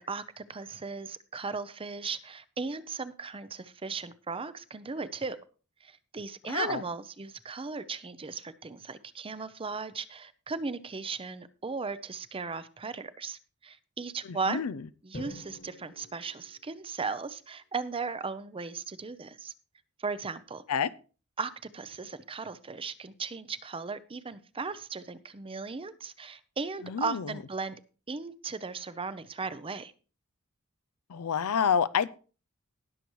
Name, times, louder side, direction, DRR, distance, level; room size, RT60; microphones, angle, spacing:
voice 1, 0.0-5.4 5.8-14.6 15.0-19.5 20.0-20.6 21.4-27.8 28.1-29.9, right 4 dB, 25° right, 14 dB, 0.6 m, -37 dB
voice 2, 6.5-6.8 14.2-14.8 20.7-20.9 26.8-27.3 31.1-32.1, left 7 dB, 70° left, 16 dB, 0.5 m, -28 dB
Drum, 15.1-17.3, left 1 dB, 40° left, 1.7 m, -47 dB
19.5 x 6.9 x 3.1 m, 0.36 s
head